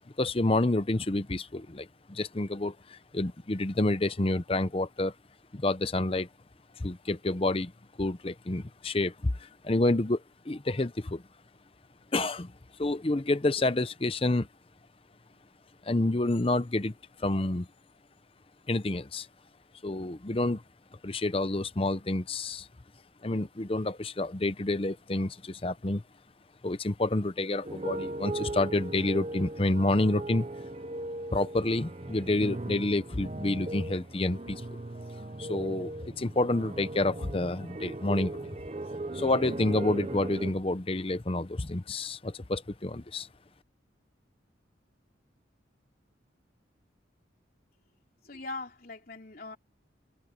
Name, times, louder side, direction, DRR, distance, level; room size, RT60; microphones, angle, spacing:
voice 1, 0.2-5.1 5.5-6.3 6.8-7.7 8.0-11.2 12.1-12.5 12.8-14.5 15.8-16.9 17.2-17.7 18.7-19.3 19.8-20.6 21.0-22.7 23.2-26.0 26.6-30.5 31.3-34.6 35.4-38.6 39.1-43.3, left 2 dB, 30° left, 0.7 m, -29 dB
sound 1, 27.6-40.5, right 2 dB, 35° right, 0.7 m, -38 dB
voice 2, 48.2-49.6, left 3 dB, 50° left, 3.7 m, -40 dB
head